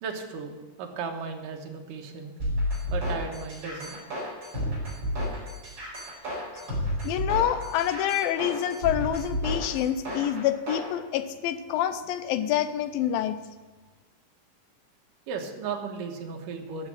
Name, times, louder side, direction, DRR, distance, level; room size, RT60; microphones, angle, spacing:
voice 1, 0.0-2.3 2.9-4.0 6.2-6.3 6.6-6.7 15.3-16.9, right 5 dB, 70° right, 2 dB, 2.8 m, -36 dB
sound 1, 2.4-10.9, equal, 30° right, 5.4 m, -31 dB
voice 2, 7.0-13.4, left 11 dB, 80° left, 11 dB, 2.4 m, -27 dB
13.0 x 7.3 x 7.4 m, 1.3 s
omnidirectional pair, 4.1 m